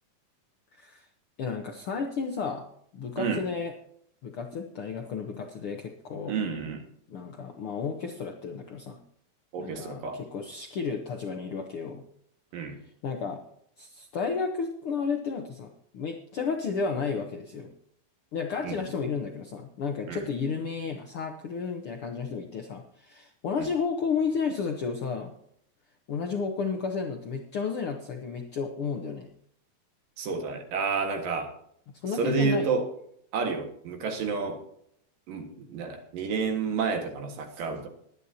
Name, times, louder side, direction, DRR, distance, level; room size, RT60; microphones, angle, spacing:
voice 1, 0.7-1.1 1.4-2.7 2.9-3.7 4.2-6.3 7.1-9.0 9.6-12.0 13.0-13.4 13.8-17.7 18.3-25.3 26.1-29.3 31.9-32.7, left 5 dB, 90° left, 3 dB, 1.2 m, -32 dB
voice 2, 6.3-6.8 9.5-10.2 12.5-12.8 18.6-18.7 20.1-20.2 30.2-31.5 32.2-32.9 33.3-34.6 35.3-37.9, right 5 dB, 70° right, 4 dB, 3.3 m, -30 dB
21.5 x 9.8 x 2.8 m, 0.69 s
omnidirectional pair, 4.2 m